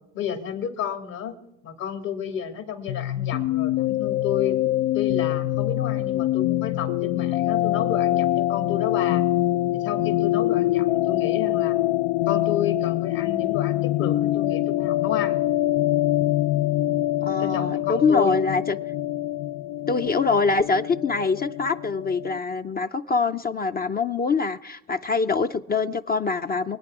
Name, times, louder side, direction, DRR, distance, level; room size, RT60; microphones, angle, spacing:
voice 1, 0.1-1.4 1.6-4.6 4.9-9.3 9.7-11.8 12.3-15.4 17.4-18.4, left 8 dB, 65° left, 2.6 m, -31 dB
sound 1, 2.9-22.4, left 15 dB, 85° left, 0.5 m, -24 dB
voice 2, 17.2-18.8 19.9-26.8, left 4 dB, 25° left, 0.5 m, -24 dB
24.5 x 9.0 x 4.8 m
supercardioid pair, 95°, 37 cm